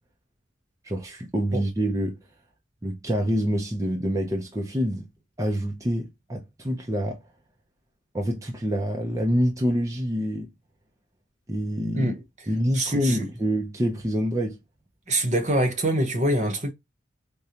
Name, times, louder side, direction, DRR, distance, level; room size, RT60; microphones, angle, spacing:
voice 1, 0.8-2.2 2.8-5.1 5.4-7.2 8.1-10.5 11.5-12.1 12.5-14.6, equal, 15° right, 0.6 m, -26 dB
voice 2, 12.7-13.3 15.1-16.7, right 1 dB, 40° right, 0.9 m, -24 dB
4.9 x 2.2 x 2.8 m
head